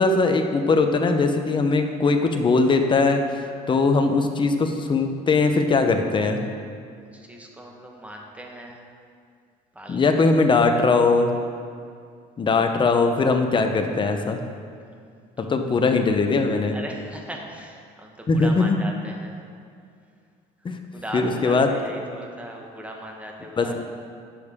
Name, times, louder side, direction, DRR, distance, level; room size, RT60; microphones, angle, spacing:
voice 1, 0.0-6.4 9.9-11.3 12.4-14.4 15.4-16.8 18.3-18.8 20.6-20.8 21.1-21.7 23.6-23.8, left 3 dB, 30° left, 5 dB, 0.8 m, -20 dB
voice 2, 7.0-8.9 9.7-10.0 14.9-15.7 16.7-19.4 20.9-23.8, right 1 dB, 10° right, 0 dB, 1.2 m, -39 dB
10.0 x 6.5 x 3.6 m, 2.3 s
cardioid pair, 110°, 17 cm